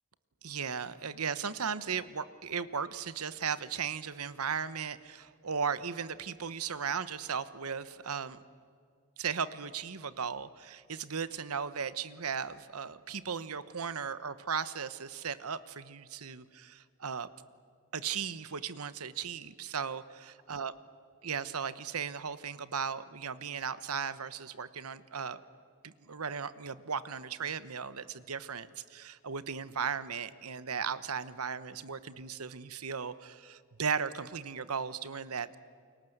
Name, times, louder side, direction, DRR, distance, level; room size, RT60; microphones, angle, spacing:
voice 1, 0.4-8.4 9.2-17.3 17.9-20.7 21.2-25.4 25.8-35.6, right 6 dB, 85° right, 15 dB, 1.1 m, -36 dB
29.5 x 22.5 x 8.0 m, 2.2 s
head